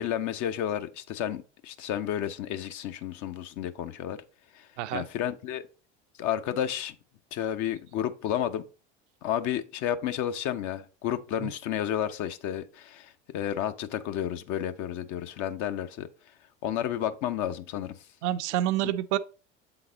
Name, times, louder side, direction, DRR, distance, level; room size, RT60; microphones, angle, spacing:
voice 1, 0.0-4.2 4.9-5.6 6.2-6.9 7.3-8.6 9.2-16.1 16.6-17.9 18.8-18.9, left 10 dB, 55° left, 0.9 m, -31 dB
voice 2, 18.2-19.2, right 13 dB, 75° right, 0.7 m, -28 dB
7.7 x 4.0 x 3.8 m
hypercardioid pair, 80°, 35 cm